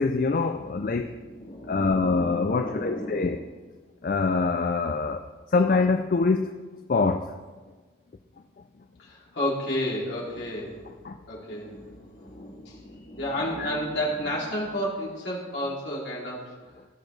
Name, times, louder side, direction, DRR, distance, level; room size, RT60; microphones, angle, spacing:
voice 1, 0.0-1.1 1.7-3.4 4.0-6.6 6.9-7.3 11.0-11.2 13.6-13.7, left 4 dB, 45° left, 6 dB, 0.4 m, -24 dB
voice 2, 0.5-3.4 9.0-10.9 11.3-16.6, left 1 dB, 65° left, -5 dB, 2.9 m, -32 dB
17.0 x 6.4 x 3.2 m, 1.4 s
head